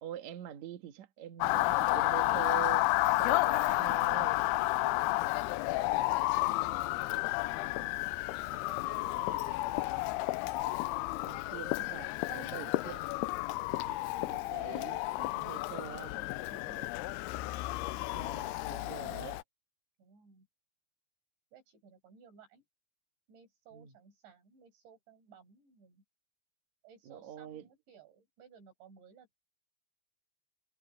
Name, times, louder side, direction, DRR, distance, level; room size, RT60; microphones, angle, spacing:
voice 1, 0.0-2.9 3.2-4.4 7.8-7.9 11.3-13.1 13.9-14.0 14.3-16.1 18.1-19.4 23.7-23.9 27.1-27.6, right 10 dB, 55° right, 2.3 m, -44 dB
Motor vehicle (road) / Siren, 1.4-19.4, left 19 dB, 85° left, 2.4 m, -31 dB
voice 2, 5.4-6.5 6.9-8.0 8.5-9.8 15.5-15.6 16.0-17.3 19.0-19.4 20.0-20.5 21.5-22.6 23.3-26.0 26.8-29.4, right 6 dB, 85° right, 8.8 m, -58 dB
omnidirectional pair, 5.1 m